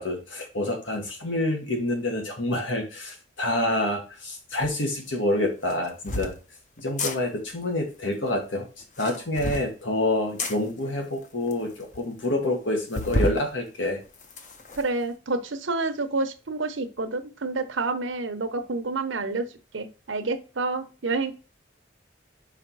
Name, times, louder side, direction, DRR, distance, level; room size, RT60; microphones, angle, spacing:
voice 1, 0.0-6.3 6.8-8.7 9.0-14.0, left 1 dB, 80° left, 2 dB, 1.8 m, -27 dB
sound 1, 4.6-4.7 5.6-6.3 6.9-7.2 8.8-9.7 10.4-10.6 11.2-11.3 11.5-11.6 11.9-12.0 12.9-13.4 13.9-14.8, left 1 dB, 40° left, 0.8 m, -30 dB
voice 2, 14.8-19.4 19.7-21.3, right 3 dB, 85° right, 8 dB, 0.9 m, -28 dB
5.0 x 4.3 x 4.7 m, 0.33 s
head